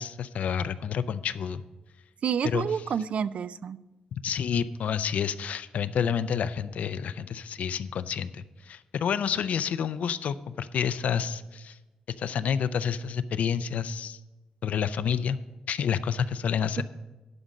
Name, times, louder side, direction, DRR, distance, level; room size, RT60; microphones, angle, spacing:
voice 1, 0.0-1.6 2.4-2.7 4.2-11.8 12.2-14.2 14.6-15.4 15.7-16.8, left 7 dB, 80° left, 14 dB, 0.5 m, -29 dB
voice 2, 2.2-3.8 16.8-16.9, right 7 dB, 60° right, 17 dB, 0.3 m, -29 dB
11.5 x 5.2 x 7.2 m, 1.1 s
wide cardioid pair, 150°, 2 cm